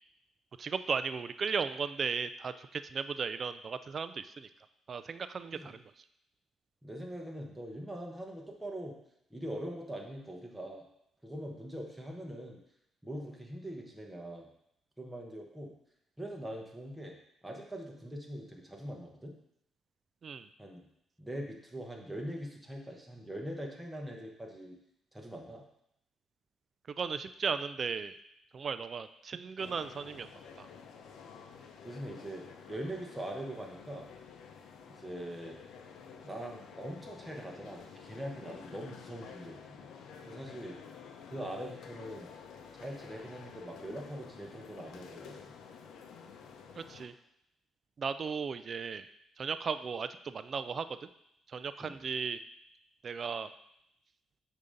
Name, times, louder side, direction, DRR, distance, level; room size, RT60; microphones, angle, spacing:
voice 1, 0.6-4.5 4.9-5.8 20.2-20.5 27.0-28.1 28.5-30.3 46.8-47.1 48.0-49.1 49.4-50.9 51.5-52.4 53.0-53.5, right 5 dB, 45° right, 12 dB, 0.3 m, -36 dB
voice 2, 6.8-9.0 9.3-10.8 11.2-12.6 13.0-14.5 15.0-15.7 16.2-17.2 17.4-19.3 20.6-20.8 21.2-24.8 25.1-25.6 31.8-34.1 34.9-35.6 36.2-39.9 40.3-40.8 41.3-42.3 42.8-45.5 51.8-52.0, right 1 dB, 5° right, 0 dB, 1.0 m, -42 dB
sound 1, 29.6-47.1, left 6 dB, 80° left, 0.6 m, -51 dB
6.7 x 2.7 x 5.1 m, 0.78 s
cardioid pair, 90°, 0 cm